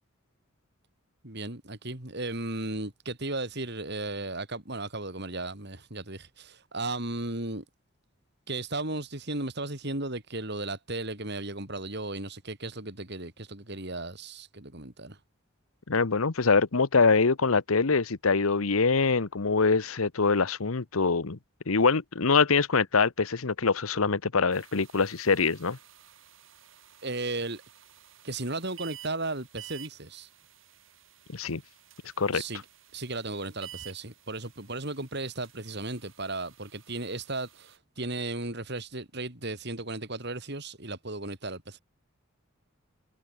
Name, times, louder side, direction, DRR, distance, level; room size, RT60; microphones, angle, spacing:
voice 1, 1.2-7.6 8.5-15.2 27.0-27.6 28.2-30.3 32.3-32.6 32.9-41.8, right 2 dB, 55° right, 4.2 m, -35 dB
voice 2, 15.9-21.4 21.7-25.8 31.3-31.6 32.2-32.4, left 4 dB, 85° left, 1.1 m, -24 dB
sound 1, 24.5-37.8, right 12 dB, 70° right, 4.7 m, -52 dB
head